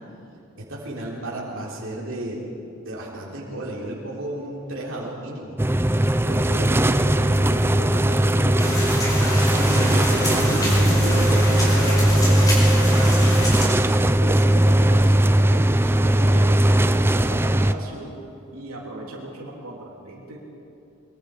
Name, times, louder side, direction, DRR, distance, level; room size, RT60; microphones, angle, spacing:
voice 1, 0.6-5.6 6.2-8.8, right 1 dB, 65° right, -4 dB, 3.7 m, -33 dB
sound 1, 5.6-17.7, right 1 dB, 10° right, 0.5 m, -18 dB
sound 2, 8.6-13.7, equal, 20° left, 5.4 m, -28 dB
voice 2, 9.4-13.5 14.2-18.2 18.5-20.4, right 1 dB, 80° right, -3 dB, 3.6 m, -35 dB
sound 3, 10.0-13.8 14.1-14.2 14.6-15.1 16.2-16.3 17.3-17.4, equal, 70° left, 4.4 m, -37 dB
23.5 x 22.5 x 5.2 m, 2.7 s
head